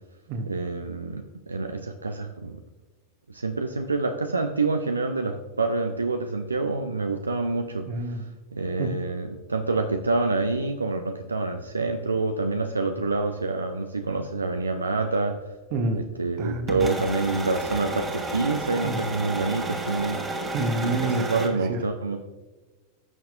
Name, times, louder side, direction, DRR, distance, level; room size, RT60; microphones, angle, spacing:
voice 1, 0.5-2.6 3.3-7.9 8.5-15.4 16.2-20.2 20.8-22.2, right 3 dB, 80° right, 7 dB, 0.5 m, -27 dB
voice 2, 7.9-8.3 8.8-8.9 15.7-16.0 16.4-17.0 18.8-19.0 20.5-21.3 21.7-21.8, right 2 dB, 45° right, 7 dB, 1.1 m, -28 dB
sound 1, 16.7-21.5, right 2 dB, 15° right, 1.5 m, -31 dB
14.5 x 5.9 x 2.5 m, 1.2 s
figure-of-eight pair, 90°, 0 cm